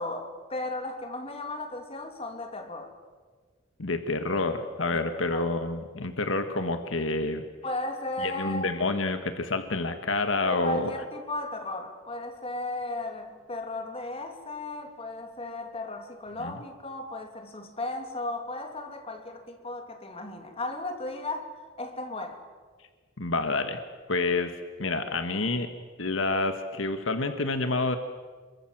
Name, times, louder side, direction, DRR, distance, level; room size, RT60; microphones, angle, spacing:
voice 1, 0.0-2.9 4.9-5.5 7.6-8.7 10.5-22.4, left 2 dB, 30° left, 2.9 m, -35 dB
voice 2, 3.8-7.4 8.2-10.9 16.4-16.5 23.2-23.8 24.1-24.5 24.8-25.7 26.0-28.0, left 3 dB, 70° left, 1.6 m, -28 dB
28.0 x 23.0 x 7.5 m
head